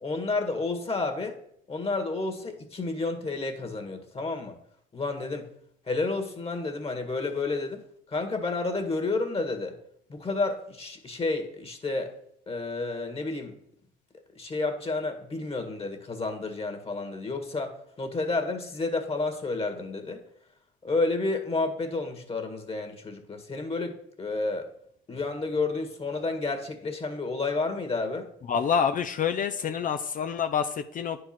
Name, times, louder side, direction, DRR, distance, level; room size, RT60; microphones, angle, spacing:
voice 1, 0.0-1.4 1.7-4.6 4.9-5.5 5.9-7.8 8.1-9.8 10.1-12.1 12.5-13.6 14.4-20.2 20.8-24.7 25.1-28.3, left 3 dB, 30° left, 5 dB, 1.9 m, -30 dB
voice 2, 28.5-31.2, left 7 dB, 45° left, 9 dB, 0.6 m, -27 dB
9.5 x 4.8 x 6.0 m, 0.69 s
supercardioid pair, 80°, 18 cm